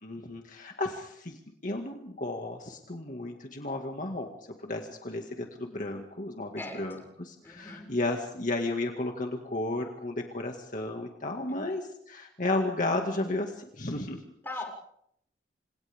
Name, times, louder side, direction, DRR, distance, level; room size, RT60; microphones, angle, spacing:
voice 1, 0.0-4.3 4.6-14.2, left 2 dB, 50° left, 2 dB, 2.1 m, -33 dB
voice 2, 6.6-7.0 7.4-7.9 11.5-11.6 14.4-14.6, left 2 dB, 15° left, 0 dB, 6.5 m, -40 dB
30.0 x 27.5 x 3.7 m, 0.72 s
head